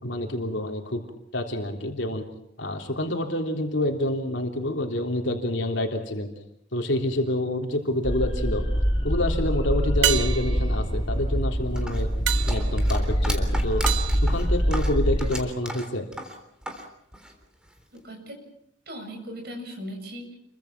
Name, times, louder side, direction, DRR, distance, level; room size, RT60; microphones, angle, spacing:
voice 1, 0.0-1.0 1.3-2.2 2.6-6.3 6.7-8.6 9.0-12.1 12.5-13.8 14.2-16.1, left 1 dB, 75° left, 2 dB, 3.4 m, -27 dB
sound 1, 7.7-8.3 10.0-15.2 19.6-19.7, right 11 dB, 80° right, 1.2 m, -31 dB
sound 2, 8.0-15.3, equal, 25° left, 3.5 m, -24 dB
sound 3, 11.8-16.9 17.1-18.0, equal, 5° right, 3.6 m, -35 dB
voice 2, 17.9-18.4 18.9-20.4, equal, 55° right, 3 dB, 7.6 m, -38 dB
29.5 x 23.5 x 6.0 m, 0.73 s
head